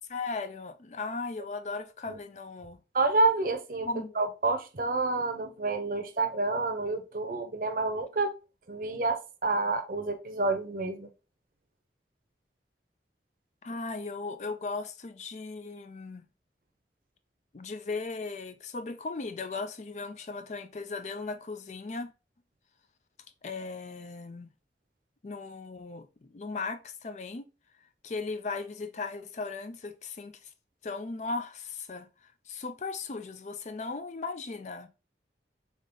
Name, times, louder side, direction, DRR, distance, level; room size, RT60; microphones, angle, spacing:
voice 1, 0.1-2.8 3.8-4.2 13.6-16.2 17.5-22.1 23.4-24.5 25.2-27.5 28.0-30.5 30.8-34.9, left 3 dB, 40° left, 0.4 m, -37 dB
voice 2, 2.9-3.9 4.2-8.3 8.7-11.1, right 3 dB, 50° right, 0.7 m, -28 dB
3.7 x 3.6 x 3.8 m
head